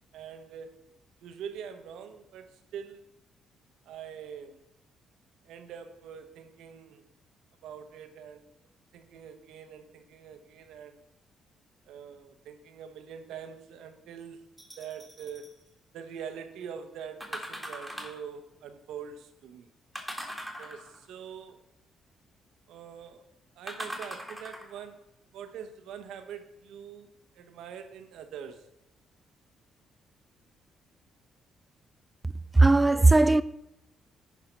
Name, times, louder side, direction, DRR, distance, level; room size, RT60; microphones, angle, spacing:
voice 1, 0.1-0.8 1.2-3.0 3.8-4.6 5.4-7.1 7.6-8.5 8.9-11.0 11.9-14.5 14.8-15.5 15.9-19.7 20.6-21.6 22.7-25.1 25.3-27.1 27.3-28.7, right 7 dB, 85° right, 0.9 m, -44 dB
sound 1, 14.6-15.5 17.2-18.3 20.0-21.1 23.7-24.8 25.5-25.6, equal, ahead, 2.0 m, -40 dB
voice 2, 32.5-33.4, right 2 dB, 15° right, 0.3 m, -18 dB
10.0 x 4.6 x 5.6 m
cardioid pair, 90°, 0 cm